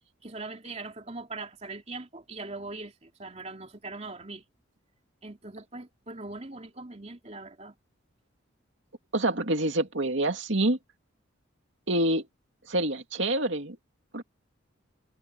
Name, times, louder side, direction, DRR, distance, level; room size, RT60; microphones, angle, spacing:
voice 1, 0.2-4.4 5.2-7.7, right 3 dB, 35° right, 2.9 m, -41 dB
voice 2, 9.1-10.8 11.9-12.2 12.7-13.8 14.1-14.2, right 1 dB, 65° right, 2.6 m, -26 dB
head